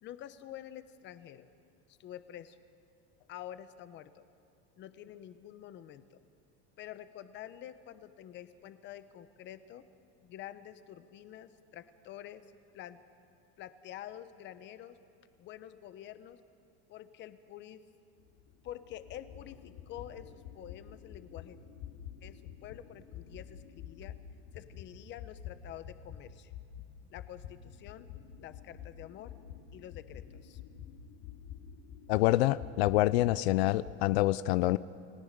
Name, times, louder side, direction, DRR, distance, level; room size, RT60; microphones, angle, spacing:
voice 1, 0.0-1.5 1.9-2.6 3.3-4.3 4.8-6.2 6.8-9.8 10.2-12.5 12.7-13.0 13.6-15.0 15.4-16.4 16.9-17.9 18.6-21.6 22.2-24.1 24.5-26.5 27.1-28.1 28.4-29.3 29.7-30.6, left 11 dB, 35° left, 12 dB, 1.1 m, -48 dB
sound 1, 18.2-26.2 26.5-34.0, left 9 dB, 55° left, 2.4 m, -48 dB
voice 2, 32.1-34.8, left 16 dB, 90° left, 17 dB, 0.6 m, -26 dB
29.5 x 18.0 x 6.7 m, 2.6 s
supercardioid pair, 155°, 31 cm